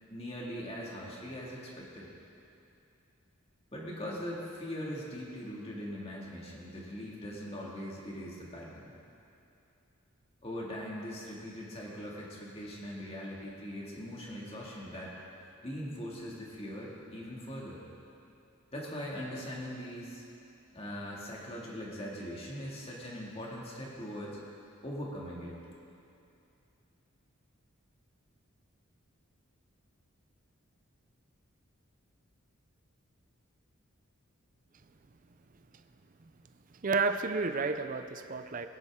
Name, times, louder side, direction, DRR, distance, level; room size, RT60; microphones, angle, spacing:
voice 1, 0.1-2.1 3.7-8.9 10.4-15.2 15.6-17.8 18.7-20.2 20.7-24.4 24.8-25.5, equal, 25° left, -4 dB, 2.1 m, -41 dB
voice 2, 36.8-38.7, right 4 dB, 40° right, 8 dB, 0.5 m, -31 dB
19.0 x 10.5 x 3.7 m, 2.7 s
head